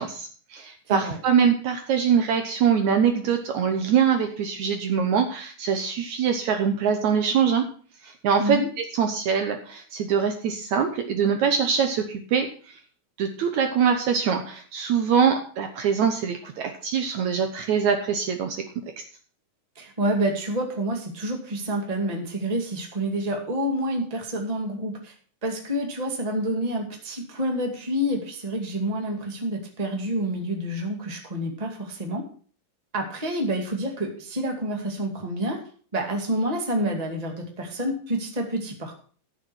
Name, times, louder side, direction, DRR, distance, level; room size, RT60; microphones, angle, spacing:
voice 1, 0.0-7.6 8.0-12.7 13.2-18.6 19.0-19.1, right 7 dB, 65° right, 5 dB, 2.1 m, -23 dB
voice 2, 0.9-1.2 8.4-8.7 19.8-25.1 25.4-32.2 32.9-35.6 35.9-39.0, right 1 dB, 15° right, 2 dB, 1.7 m, -28 dB
13.5 x 6.7 x 6.1 m, 0.43 s
omnidirectional pair, 4.0 m